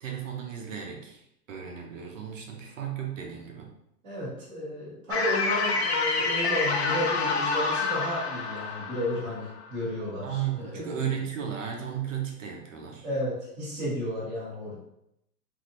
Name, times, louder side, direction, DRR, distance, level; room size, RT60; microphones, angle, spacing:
voice 1, 0.0-3.7 10.2-13.1, right 9 dB, 50° right, 1 dB, 0.7 m, -34 dB
voice 2, 4.0-11.1 13.0-14.8, left 1 dB, 10° right, -11 dB, 0.6 m, -33 dB
sound 1, 5.1-10.2, left 4 dB, 45° left, 0.5 m, -28 dB
3.2 x 2.7 x 2.6 m, 0.80 s
hypercardioid pair, 160°, 49 cm